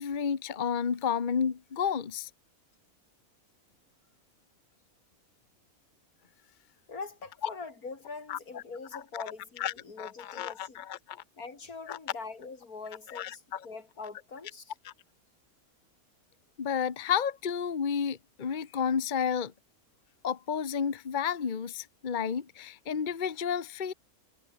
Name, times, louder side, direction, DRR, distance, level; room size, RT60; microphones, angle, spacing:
voice 1, 0.0-2.3 7.4-7.5 8.3-8.6 8.9-9.2 9.6-11.2 11.9-12.0 13.1-13.7 14.8-14.9 16.6-19.5 20.2-23.9, left 7 dB, 35° left, 1.1 m, -31 dB
voice 2, 6.9-10.8 11.4-14.7, left 4 dB, 85° left, 3.5 m, -43 dB
omnidirectional pair, 1.5 m